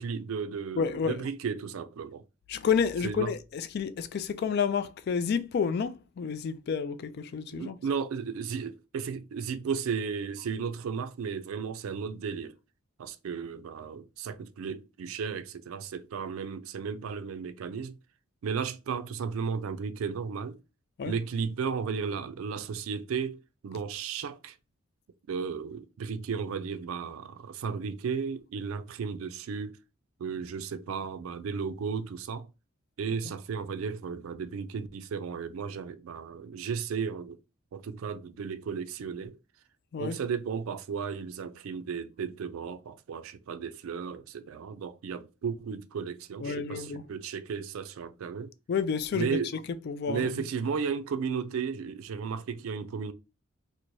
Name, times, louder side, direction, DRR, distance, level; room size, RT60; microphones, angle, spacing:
voice 1, 0.0-2.2 3.0-3.3 7.5-12.6 13.0-18.0 18.4-20.6 21.0-24.6 25.3-29.8 30.2-32.5 33.0-37.4 37.7-39.4 40.0-48.5 49.1-49.5 50.1-53.1, right 6 dB, 85° right, 0.4 m, -34 dB
voice 2, 0.8-1.2 2.5-7.8 21.0-21.1 39.9-40.2 46.4-47.0 48.7-49.4 49.9-50.3, left 6 dB, 50° left, 0.3 m, -30 dB
4.5 x 2.1 x 2.6 m
head